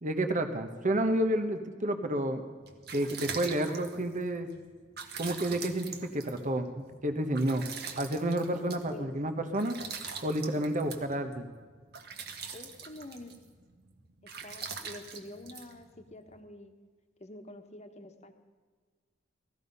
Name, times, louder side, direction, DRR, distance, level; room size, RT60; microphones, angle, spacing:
voice 1, 0.0-2.4 2.9-4.5 5.2-7.6 8.0-9.7 10.2-11.5, right 1 dB, 40° right, 7 dB, 1.2 m, -30 dB
sound 1, 2.4-16.4, right 6 dB, 60° right, 1.6 m, -44 dB
voice 2, 8.9-9.2 12.5-13.3 14.2-16.7 17.2-18.3, left 1 dB, 35° left, 6 dB, 1.3 m, -47 dB
18.0 x 14.5 x 5.5 m, 1.5 s
head